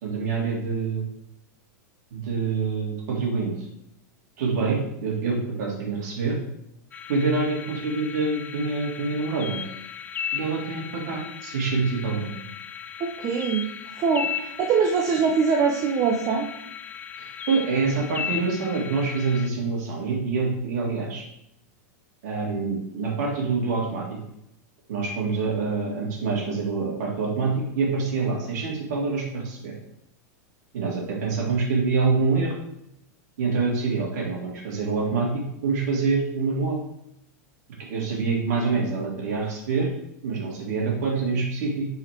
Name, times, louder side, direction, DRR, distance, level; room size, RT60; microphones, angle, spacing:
voice 1, 0.0-1.1 2.1-3.5 4.4-6.4 7.1-9.6 10.3-12.4 17.2-21.2 22.2-24.2 24.9-29.8 30.7-32.6 33.4-36.8 37.9-39.9 40.2-41.9, right 4 dB, 70° right, -1 dB, 2.3 m, -26 dB
sound 1, 6.9-19.5, left 8 dB, 15° left, 0.3 m, -36 dB
voice 2, 13.0-13.7 14.0-16.5, right 5 dB, 35° right, 1 dB, 0.7 m, -23 dB
4.8 x 4.8 x 4.5 m, 0.79 s
supercardioid pair, 135°, 9 cm